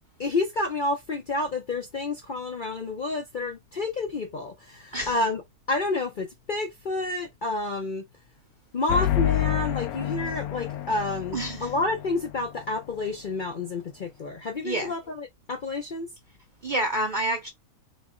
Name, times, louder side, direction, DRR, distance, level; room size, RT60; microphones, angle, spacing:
voice 1, 0.2-5.4 5.7-8.0 8.7-16.1, left 2 dB, 50° left, 0.6 m, -29 dB
sound 1, 8.9-12.4, left 13 dB, 80° left, 1.1 m, -28 dB
voice 2, 16.6-17.5, right 1 dB, 50° right, 0.6 m, -27 dB
4.1 x 2.0 x 3.7 m
omnidirectional pair, 1.6 m